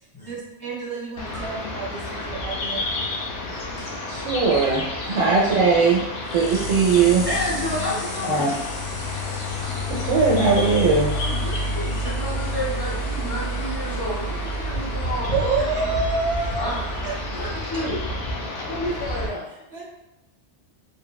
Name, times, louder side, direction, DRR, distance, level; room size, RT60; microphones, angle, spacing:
voice 1, 0.3-2.9 5.2-5.4 15.3-17.8 19.5-19.8, right 3 dB, 35° right, -4 dB, 0.8 m, -29 dB
sound 1, 1.2-19.3, left 2 dB, 90° left, 0.9 m, -31 dB
sound 2, 2.5-18.4, equal, 60° left, 0.7 m, -32 dB
voice 2, 4.1-6.0 6.3-7.3 8.3-8.5 10.0-11.1, right 4 dB, 85° right, -3 dB, 0.9 m, -19 dB
voice 3, 7.3-8.5 11.0-15.3 15.6-15.7 16.6-16.9 17.3-18.0 18.7-19.5, left 1 dB, 25° left, -5 dB, 0.6 m, -30 dB
3.5 x 2.1 x 2.2 m, 0.94 s
omnidirectional pair, 1.2 m